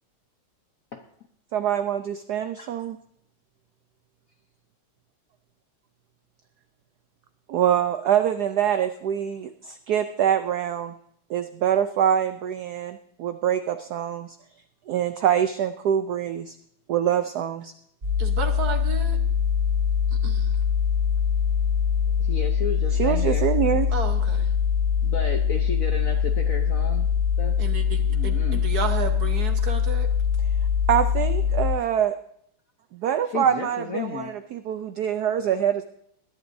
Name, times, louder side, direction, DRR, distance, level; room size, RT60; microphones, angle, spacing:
voice 1, 1.5-3.0 7.5-10.9 11.3-14.4 14.9-16.5 16.9-17.7 22.9-23.9 30.9-32.1 32.9-35.8, right 9 dB, 80° right, 9 dB, 0.8 m, -24 dB
sound 1, 18.0-31.7, left 7 dB, 35° right, 2.6 m, -23 dB
voice 2, 18.2-19.2 20.2-20.6 23.9-24.5 27.6-30.1, right 5 dB, 55° right, 6 dB, 1.3 m, -32 dB
voice 3, 22.2-23.5 25.0-27.1 27.4-27.5 28.1-28.6 33.2-34.3, left 5 dB, 60° left, 4 dB, 0.9 m, -33 dB
21.0 x 11.0 x 2.7 m, 0.69 s
omnidirectional pair, 2.4 m